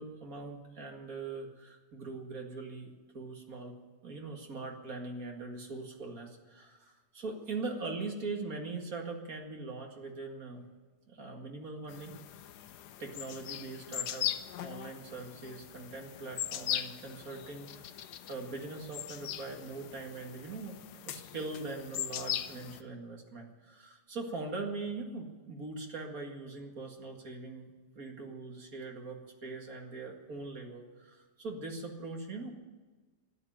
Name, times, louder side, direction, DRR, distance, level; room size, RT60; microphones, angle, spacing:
voice 1, 0.0-3.7 4.0-10.6 11.1-12.1 13.0-14.3 14.6-17.9 18.3-20.8 21.1-32.5, right 3 dB, 60° right, 2 dB, 2.4 m, -41 dB
sound 1, 11.9-22.8, left 11 dB, 85° left, 1.3 m, -40 dB
12.5 x 11.0 x 8.8 m, 1.3 s
omnidirectional pair, 1.7 m